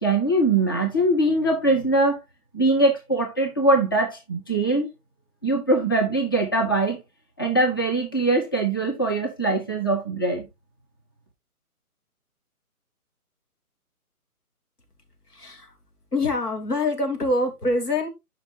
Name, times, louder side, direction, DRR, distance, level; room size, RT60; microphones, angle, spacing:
voice 1, 0.0-2.2 2.5-4.9 5.4-7.0 7.4-10.5, right 2 dB, 15° left, 0.5 m, -22 dB
voice 2, 15.3-15.8 16.1-18.1, left 2 dB, 90° left, 3.1 m, -25 dB
12.5 x 5.2 x 2.6 m
figure-of-eight pair, 145°, 45 cm